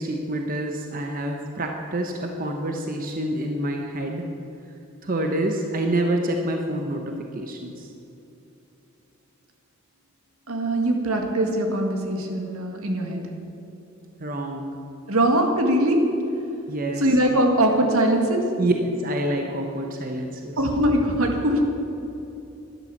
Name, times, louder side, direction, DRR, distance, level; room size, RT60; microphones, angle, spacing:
voice 1, 0.0-4.3 5.0-7.9 14.2-14.8 16.7-17.1 18.6-18.7 19.0-20.6, right 1 dB, 40° right, 3 dB, 0.9 m, -27 dB
voice 2, 10.5-13.2 15.1-16.1 17.0-18.5 20.6-21.6, right 1 dB, 75° right, 3 dB, 1.9 m, -21 dB
11.5 x 11.5 x 7.2 m, 2.8 s
head